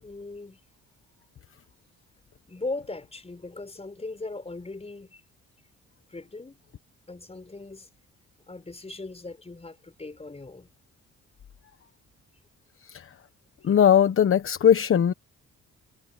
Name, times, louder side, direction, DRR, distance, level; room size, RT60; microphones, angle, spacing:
voice 1, 0.0-0.6 2.5-5.2 6.1-6.6 7.1-7.9 8.5-10.7, left 3 dB, 20° left, 5.4 m, -38 dB
voice 2, 13.6-15.1, left 8 dB, 45° left, 1.1 m, -19 dB
cardioid pair, 90°, 30 cm